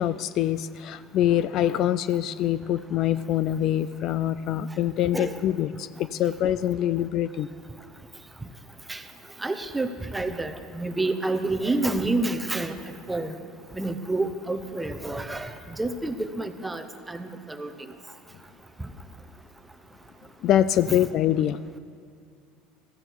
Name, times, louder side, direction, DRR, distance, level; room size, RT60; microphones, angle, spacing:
voice 1, 0.0-7.5 20.4-21.6, left 11 dB, 50° left, 15 dB, 0.3 m, -24 dB
voice 2, 9.4-12.7 13.1-13.3 13.7-15.5 15.8-17.7 20.9-21.0, right 2 dB, 10° right, 8 dB, 0.8 m, -28 dB
15.5 x 14.5 x 4.7 m, 2.2 s
supercardioid pair, 130°, 0 cm